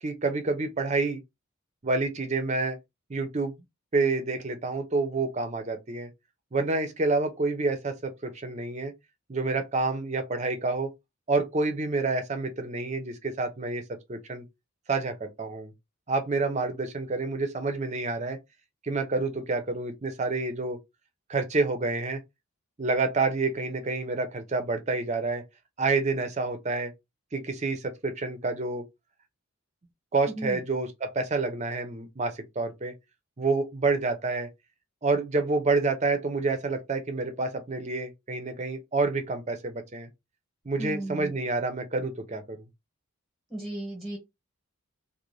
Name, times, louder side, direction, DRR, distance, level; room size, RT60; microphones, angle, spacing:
voice 1, 0.0-1.2 1.8-2.8 3.1-3.5 3.9-6.1 6.5-8.9 9.3-10.9 11.3-13.8 14.1-14.4 14.9-15.7 16.1-18.4 18.8-20.8 21.3-22.2 22.8-25.4 25.8-26.9 27.3-28.8 30.1-32.9 33.4-34.5 35.0-40.1 40.7-42.6, right 3 dB, 30° right, 0.5 m, -28 dB
voice 2, 40.8-41.3 43.5-44.2, right 1 dB, ahead, 1.0 m, -34 dB
2.5 x 2.1 x 3.1 m
head